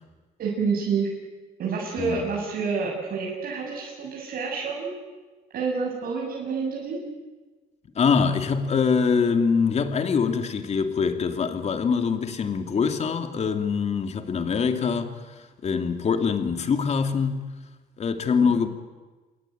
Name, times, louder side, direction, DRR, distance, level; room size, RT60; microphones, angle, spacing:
voice 1, 0.4-1.1 1.6-4.9 5.5-7.0 18.4-18.5, right 5 dB, 60° right, 7.4 m, -28 dB
voice 2, 2.0-2.3 7.9-15.1 15.6-17.4 18.0-18.7, left 5 dB, 40° left, 2.9 m, -24 dB
28.5 x 21.5 x 9.4 m
cardioid pair, 110°, 17 cm